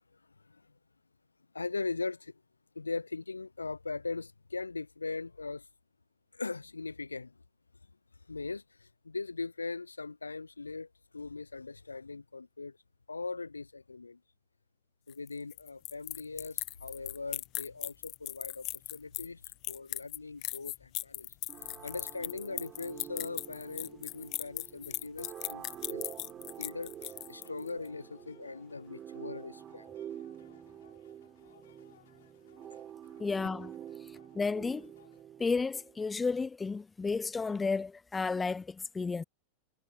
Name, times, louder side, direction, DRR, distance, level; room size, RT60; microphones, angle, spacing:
voice 1, 1.5-2.3 2.8-5.6 6.3-7.3 8.3-10.9 11.1-12.8 13.1-14.2 15.1-19.4 19.7-21.3 21.8-26.1 26.6-29.8, left 3 dB, 80° left, 0.7 m, -40 dB
sound 1, 15.1-27.7, left 19 dB, 40° left, 1.0 m, -39 dB
sound 2, 21.5-36.0, right 10 dB, 25° right, 6.6 m, -48 dB
sound 3, 27.1-35.2, left 10 dB, 60° left, 5.7 m, -64 dB
voice 2, 33.2-33.7 34.3-34.9 35.4-39.2, left 4 dB, 15° left, 0.6 m, -32 dB
figure-of-eight pair, 90°, 0 cm